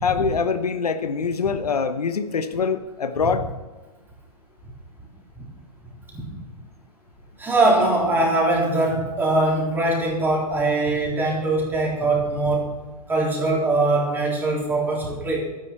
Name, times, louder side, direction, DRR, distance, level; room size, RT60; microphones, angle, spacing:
voice 1, 0.0-3.4, left 5 dB, 80° left, 10 dB, 1.0 m, -24 dB
voice 2, 7.4-12.7 13.1-15.4, right 2 dB, 10° right, -3 dB, 3.7 m, -22 dB
12.0 x 10.0 x 4.4 m, 1.2 s
hypercardioid pair, 120°, 19 cm